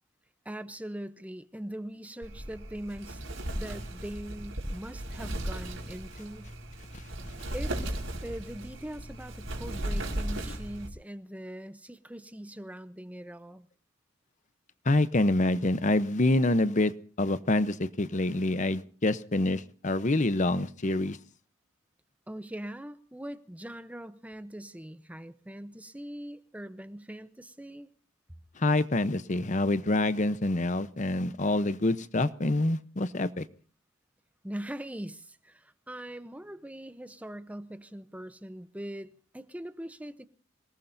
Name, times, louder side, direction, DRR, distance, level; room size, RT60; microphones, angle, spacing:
voice 1, 0.4-3.2 3.5-6.5 7.5-13.7 22.3-27.9 34.4-40.3, right 1 dB, 5° right, 0.7 m, -41 dB
Wind, 2.2-10.9, right 1 dB, 75° right, 4.9 m, -36 dB
voice 2, 14.8-16.9 17.2-21.2 28.6-33.5, left 2 dB, 40° left, 0.8 m, -26 dB
27.0 x 19.0 x 2.7 m
head